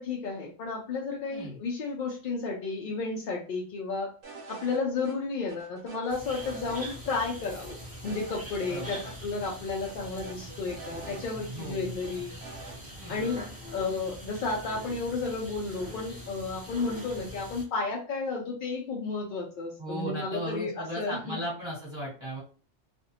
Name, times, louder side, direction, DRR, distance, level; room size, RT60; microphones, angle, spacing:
voice 1, 0.0-4.1 4.5-12.4 13.1-13.4 13.7-21.4, left 4 dB, 60° left, -2 dB, 0.5 m, -32 dB
sound 1, 4.2-4.8 5.0-5.2 5.5-7.0 7.2-7.3 7.7-9.1 9.4-9.5 9.8-11.7 12.0-12.8, right 4 dB, 85° right, 1.0 m, -45 dB
sound 2, 6.1-17.6, equal, 10° right, 0.6 m, -43 dB
voice 2, 8.7-9.0 10.9-11.9 13.0-13.3 19.8-22.4, equal, 25° right, -6 dB, 1.2 m, -37 dB
2.5 x 2.1 x 2.7 m, 0.38 s
omnidirectional pair, 1.2 m